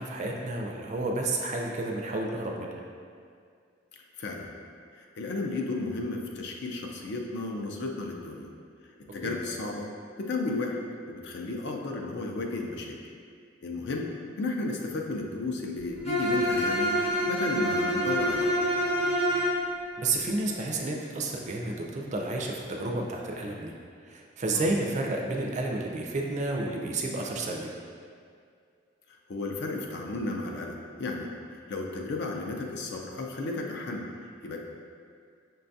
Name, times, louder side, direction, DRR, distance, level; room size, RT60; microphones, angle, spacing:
voice 1, 0.0-2.8 9.2-9.4 20.0-23.7 24.1-27.7, right 2 dB, 40° right, 0 dB, 0.3 m, -31 dB
voice 2, 4.2-4.5 5.2-8.5 9.1-9.9 10.2-10.8 11.1-13.0 13.6-14.1 14.4-18.5 24.5-24.7 29.3-31.3 31.7-34.0 34.4-34.6, left 2 dB, 60° left, 1 dB, 0.4 m, -33 dB
Bowed string instrument, 16.0-19.6, equal, 30° left, 0.8 m, -26 dB
5.5 x 2.3 x 2.6 m, 2.2 s
head